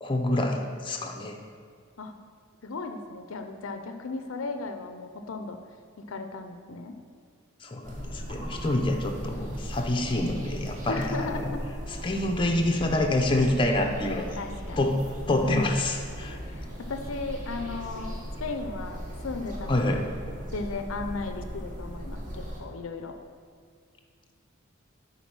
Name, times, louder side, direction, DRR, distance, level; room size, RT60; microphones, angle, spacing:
voice 1, 0.0-1.4 7.6-11.5 12.0-14.4 14.8-15.0 15.3-16.4 19.7-20.1, left 1 dB, 25° left, 3 dB, 0.6 m, -27 dB
voice 2, 2.6-5.6 6.0-7.0 10.9-11.6 14.4-14.9 15.4-15.7 16.4-20.1 20.5-23.2, left 3 dB, 65° left, 7 dB, 0.6 m, -36 dB
sound 1, 7.8-22.6, equal, 40° right, 1.3 m, -38 dB
9.6 x 4.0 x 6.1 m, 2.1 s
head